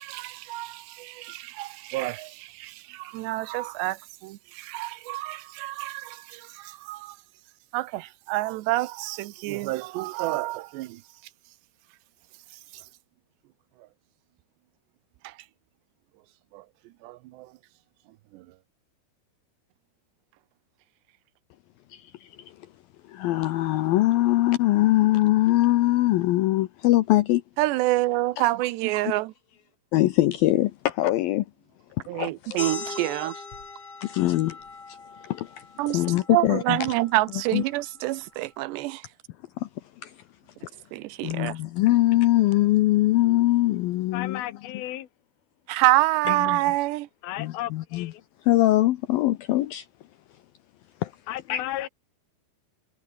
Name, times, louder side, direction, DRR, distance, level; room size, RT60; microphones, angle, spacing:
voice 1, 0.0-7.2 7.7-11.0 12.7-12.8 15.2-15.3 16.5-16.6 17.0-17.5 18.3-18.5 27.6-29.3 32.1-33.4 35.8-39.1 40.9-41.6 45.7-47.1, right 18 dB, 75° right, 2.9 m, -27 dB
voice 2, 23.1-27.4 29.9-31.5 32.1-32.6 34.0-34.6 34.9-35.0 35.2-35.5 35.9-36.8 37.5-37.6 39.6-39.7 40.0-40.1 41.2-44.4 46.4-46.6 47.4-48.1 48.4-49.9 51.0-51.1 51.5-51.6, left 16 dB, 80° left, 2.1 m, -22 dB
sound 1, 32.6-37.7, left 4 dB, 35° left, 5.4 m, -40 dB
voice 3, 44.1-45.1 47.2-48.2 51.3-51.9, left 14 dB, 60° left, 3.4 m, -34 dB
omnidirectional pair, 5.2 m